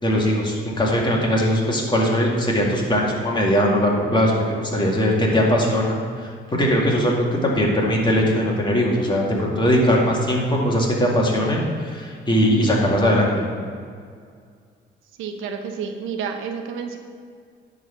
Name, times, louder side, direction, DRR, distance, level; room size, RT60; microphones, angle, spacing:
voice 1, 0.0-13.6, equal, 25° left, -2 dB, 2.1 m, -20 dB
voice 2, 15.2-17.0, right 6 dB, 90° right, 5 dB, 0.9 m, -30 dB
10.0 x 4.0 x 6.9 m, 2.1 s
cardioid pair, 90°, 20 cm